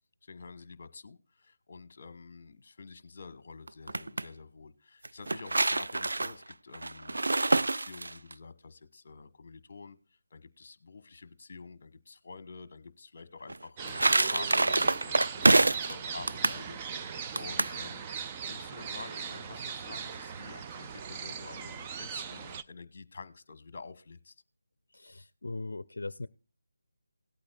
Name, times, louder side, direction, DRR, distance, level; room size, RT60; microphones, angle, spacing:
voice 1, 0.2-24.3, left 4 dB, 45° left, 1.2 m, -48 dB
sound 1, 3.7-4.2 5.0-8.3 13.5-15.9 16.3-16.6 17.4-17.8, right 2 dB, 80° right, 0.4 m, -26 dB
sound 2, 13.8-22.6, right 6 dB, 20° right, 0.4 m, -39 dB
voice 2, 24.9-26.3, left 2 dB, 75° left, 0.5 m, -39 dB
18.0 x 8.6 x 2.3 m
figure-of-eight pair, 165°, 0 cm